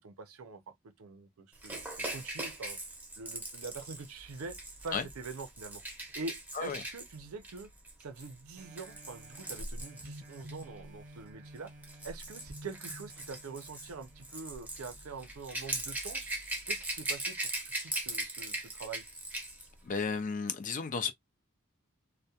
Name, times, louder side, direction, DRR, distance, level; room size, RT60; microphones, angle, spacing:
voice 1, 0.0-2.8 3.2-5.8 6.1-7.7 8.0-11.7 12.0-16.3 16.7-17.4 17.6-19.1, right 4 dB, 80° right, 0.5 m, -45 dB
Rattle / Rattle (instrument), 1.6-10.6 11.6-19.7 19.9-20.1, right 2 dB, 10° right, 0.7 m, -40 dB
sound 1, 8.6-15.8 16.3-16.4, equal, 35° right, 0.9 m, -49 dB
voice 2, 19.8-21.1, left 5 dB, 40° left, 0.4 m, -33 dB
2.3 x 2.1 x 2.7 m
head